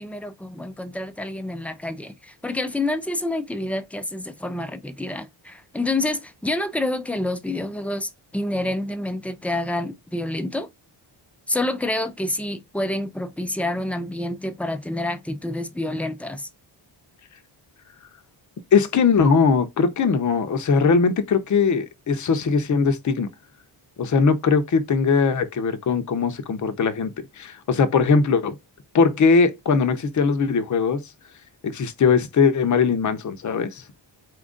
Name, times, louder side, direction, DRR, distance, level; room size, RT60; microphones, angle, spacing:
voice 1, 0.0-10.7 11.5-16.5, left 1 dB, 5° left, 0.3 m, -28 dB
voice 2, 18.7-23.3 24.0-28.6 28.9-31.0 31.6-33.8, left 5 dB, 40° left, 0.7 m, -20 dB
4.4 x 2.5 x 3.7 m
wide cardioid pair, 130°, 47 cm